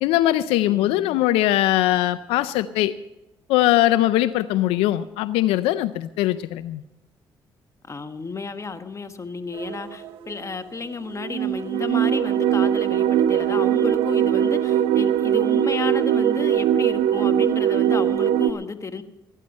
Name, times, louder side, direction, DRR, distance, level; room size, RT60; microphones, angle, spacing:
voice 1, 0.0-2.9 3.5-6.8, left 14 dB, 90° left, 15 dB, 0.5 m, -21 dB
voice 2, 0.7-1.2 7.9-19.0, left 4 dB, 30° left, 9 dB, 1.5 m, -32 dB
sound 1, 9.5-10.6 11.1-18.5, right 10 dB, 75° right, 0.7 m, -21 dB
18.5 x 10.0 x 5.3 m, 0.98 s
supercardioid pair, 60°, 9 cm